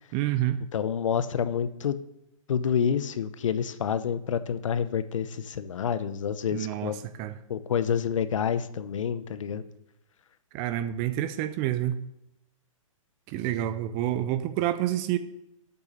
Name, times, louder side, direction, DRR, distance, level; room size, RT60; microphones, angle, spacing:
voice 1, 0.1-0.6 6.5-6.9 7.2-7.3 10.5-12.0 13.3-15.2, right 12 dB, 20° right, 12 dB, 0.4 m, -28 dB
voice 2, 0.7-2.0 2.5-7.0 7.5-9.6, left 7 dB, 65° left, 13 dB, 0.8 m, -28 dB
8.4 x 6.8 x 6.4 m, 0.82 s
hypercardioid pair, 150°, 18 cm